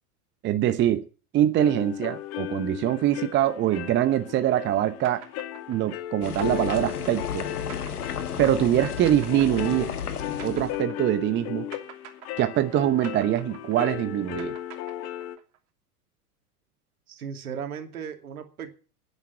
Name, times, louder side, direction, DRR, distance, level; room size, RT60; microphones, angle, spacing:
voice 1, 0.4-1.0 1.3-5.2 5.7-7.5 8.4-9.9 10.4-11.7 12.4-14.5, right 12 dB, 25° right, 11 dB, 0.9 m, -24 dB
sound 1, 1.6-15.4, left 13 dB, 35° left, 1.3 m, -36 dB
sound 2, 5.0-11.4 11.7-15.6, right 10 dB, 50° right, 3.0 m, -46 dB
sound 3, 6.2-10.8, left 7 dB, 75° left, 1.6 m, -33 dB
voice 2, 17.1-18.7, right 7 dB, 70° right, 7 dB, 2.6 m, -36 dB
10.5 x 9.9 x 8.6 m, 0.37 s
figure-of-eight pair, 95°, 45 cm